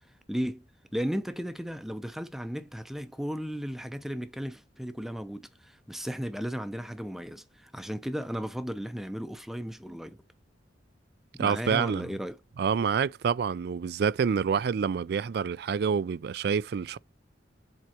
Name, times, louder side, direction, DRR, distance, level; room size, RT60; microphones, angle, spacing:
voice 1, 0.3-0.7 0.9-10.2 11.3-12.4, equal, ahead, 0.6 m, -35 dB
voice 2, 11.4-12.1 12.6-17.0, right 6 dB, 60° right, 0.3 m, -27 dB
7.5 x 4.5 x 2.9 m
head